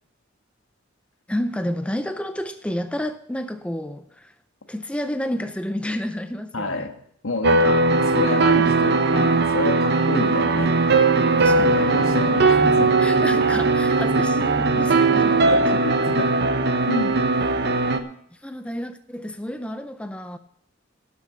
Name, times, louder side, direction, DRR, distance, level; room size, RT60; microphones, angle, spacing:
voice 1, 1.3-4.3 4.7-6.9 11.4-11.9 13.0-15.8 17.6-17.9 18.4-20.4, equal, 5° left, 0.4 m, -30 dB
voice 2, 6.5-7.0 7.2-10.8 11.6-13.0 15.5-16.5 16.9-17.3, left 3 dB, 85° left, 1.5 m, -29 dB
sound 1, 7.4-18.0, right 3 dB, 50° right, 0.8 m, -19 dB
12.0 x 7.0 x 7.5 m
head